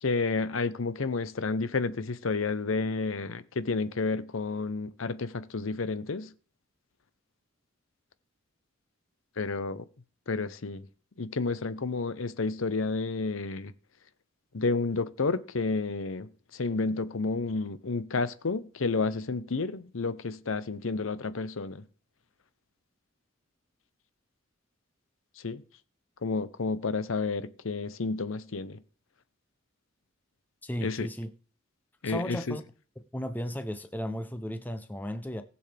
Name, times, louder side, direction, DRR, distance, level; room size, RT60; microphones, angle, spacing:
voice 1, 0.0-6.3 9.4-9.9 10.3-10.9 11.2-13.7 14.5-21.8 25.4-25.6 26.2-28.8 30.8-31.1 32.0-32.6, left 3 dB, 80° left, 0.8 m, -31 dB
voice 2, 30.6-31.3 32.0-32.6 33.1-35.4, equal, 10° left, 0.6 m, -35 dB
19.0 x 7.0 x 3.4 m
head